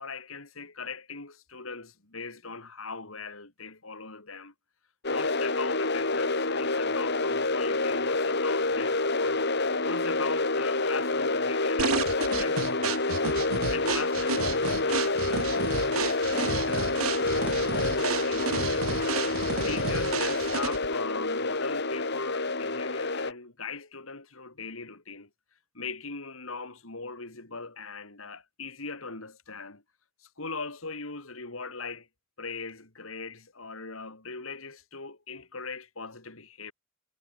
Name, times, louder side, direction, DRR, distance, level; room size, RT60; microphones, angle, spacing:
voice 1, 0.0-4.5 5.1-9.4 9.8-13.2 13.7-17.7 18.2-19.0 19.6-25.3 25.7-29.8 30.2-32.1 32.4-36.7, left 4 dB, 75° left, 4.0 m, -40 dB
sound 1, 5.0-23.3, left 3 dB, 55° left, 5.2 m, -28 dB
sound 2, 11.8-20.9, right 5 dB, 80° right, 0.9 m, -32 dB
head